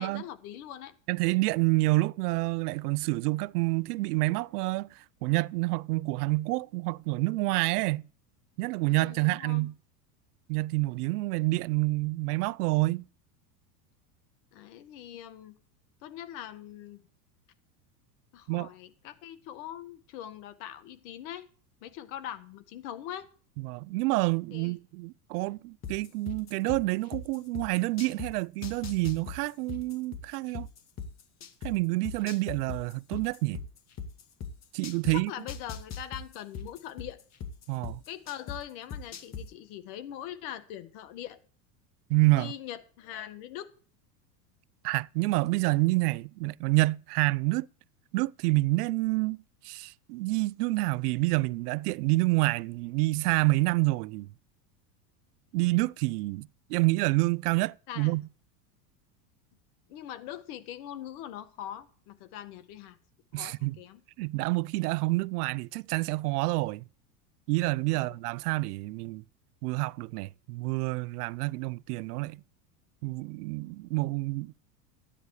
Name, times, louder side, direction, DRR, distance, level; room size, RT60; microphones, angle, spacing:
voice 1, 0.0-0.9 8.9-9.6 14.5-15.5 16.0-17.0 18.3-21.5 21.8-23.3 24.5-24.7 35.1-37.2 38.1-41.4 42.3-43.7 57.9-58.1 59.9-63.0 63.3-64.0 67.9-68.2, left 11 dB, 65° left, 1.7 m, -42 dB
voice 2, 1.1-8.1 8.6-9.7 10.5-13.0 18.5-18.7 23.6-30.7 31.6-33.6 34.7-35.3 37.7-38.0 42.1-42.5 44.8-47.7 48.1-49.4 49.6-54.3 55.5-58.3 63.3-63.8 64.2-66.8 67.5-69.2 69.6-72.4 73.0-74.5, right 22 dB, 70° right, 0.5 m, -28 dB
sound 1, 25.8-28.3 28.6-31.7 32.0-35.1 35.5-38.6 38.9-39.4, left 7 dB, 35° left, 2.0 m, -38 dB
14.0 x 10.0 x 4.8 m
supercardioid pair, 115°, 47 cm